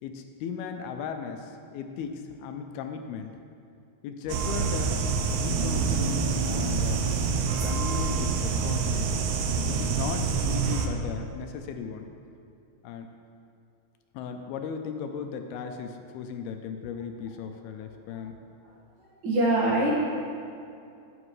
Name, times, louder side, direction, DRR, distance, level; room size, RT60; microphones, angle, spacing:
voice 1, 0.0-3.3 4.0-5.0 5.3-7.1 7.6-9.2 9.7-12.1 12.8-13.1 14.1-18.4, left 6 dB, 80° left, 5 dB, 2.4 m, -36 dB
sound 1, 4.3-10.9, right 5 dB, 80° right, 2.7 m, -26 dB
voice 2, 19.2-19.9, right 1 dB, 45° right, -6 dB, 1.6 m, -24 dB
11.0 x 9.8 x 3.2 m, 2.5 s
omnidirectional pair, 4.6 m